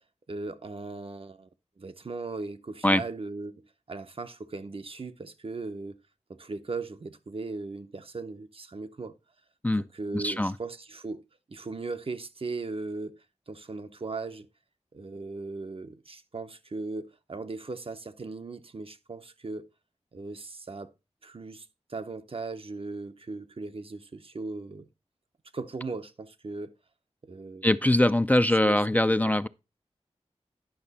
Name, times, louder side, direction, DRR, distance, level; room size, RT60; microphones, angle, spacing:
voice 1, 0.3-1.5 1.8-6.0 6.3-9.1 9.7-14.5 14.9-19.7 20.1-20.9 21.2-24.9 25.5-26.7 27.2-27.7 28.6-29.3, right 3 dB, 55° right, 0.7 m, -38 dB
voice 2, 10.1-10.5 27.6-29.5, left 1 dB, 15° left, 0.3 m, -22 dB
10.5 x 5.8 x 4.1 m
wide cardioid pair, 70°, 12 cm